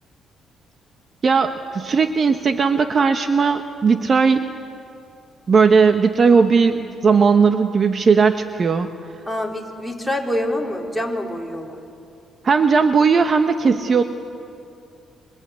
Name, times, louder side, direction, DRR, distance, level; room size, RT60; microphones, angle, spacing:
voice 1, 1.2-4.5 5.5-8.9 12.4-14.0, right 5 dB, 45° right, 7 dB, 1.2 m, -17 dB
voice 2, 9.3-11.8, left 1 dB, ahead, -1 dB, 4.1 m, -26 dB
28.5 x 24.0 x 8.4 m, 2.5 s
cardioid pair, 90°, 0 cm